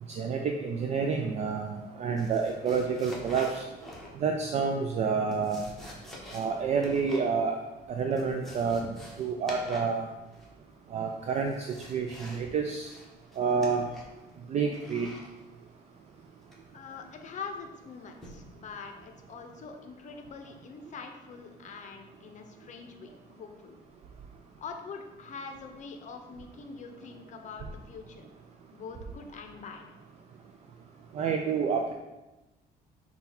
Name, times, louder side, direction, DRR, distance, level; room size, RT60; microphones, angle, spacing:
voice 1, 0.1-3.6 4.2-5.6 6.3-7.5 7.9-8.8 9.2-10.0 10.9-11.5 11.9-12.9 13.4-13.8 14.5-15.1 31.1-31.9, right 5 dB, 40° right, 3 dB, 0.4 m, -28 dB
sound 1, 2.2-4.4 5.1-7.3 7.6-7.7 8.0-10.0 10.3-10.7 11.2-12.5 12.7-14.2 14.7-15.3 16.5-16.8 18.2-18.5 19.0-19.3, left 1 dB, ahead, 1.0 m, -46 dB
voice 2, 16.7-23.8 24.6-28.3 28.7-29.9, left 5 dB, 45° left, 4 dB, 0.6 m, -44 dB
5.7 x 2.3 x 4.0 m, 1.0 s
cardioid pair, 110°, 17 cm